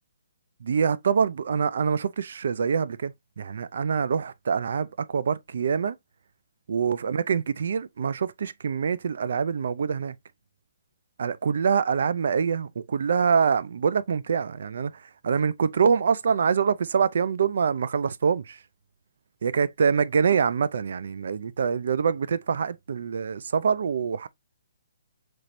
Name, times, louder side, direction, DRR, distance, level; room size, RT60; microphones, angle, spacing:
voice 1, 0.6-6.0 6.7-10.2 11.2-14.9 15.2-18.6 19.4-24.3, right 6 dB, 65° right, 0.4 m, -25 dB
4.3 x 3.1 x 2.5 m
hypercardioid pair, 160°, 0 cm